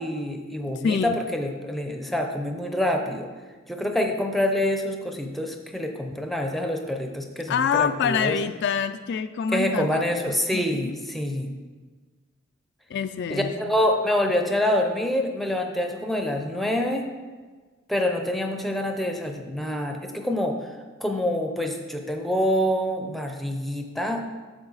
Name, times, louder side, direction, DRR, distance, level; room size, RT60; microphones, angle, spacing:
voice 1, 0.0-3.3 3.7-8.3 9.5-11.5 13.3-17.1 17.9-20.5 21.0-24.2, left 1 dB, ahead, 4 dB, 0.6 m, -26 dB
voice 2, 0.8-1.2 7.5-10.9 12.9-13.5, left 6 dB, 55° left, 9 dB, 0.3 m, -26 dB
8.8 x 6.6 x 4.0 m, 1.4 s
head